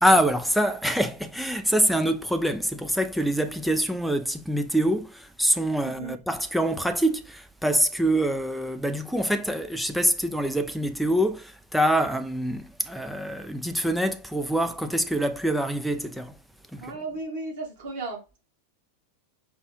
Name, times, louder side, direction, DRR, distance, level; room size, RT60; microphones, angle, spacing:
voice 1, 0.0-16.4 16.7-17.0, equal, ahead, 0.4 m, -25 dB
voice 2, 5.8-6.2 16.8-18.4, right 3 dB, 50° right, 1.8 m, -35 dB
4.7 x 2.3 x 3.4 m
figure-of-eight pair, 90°, 0 cm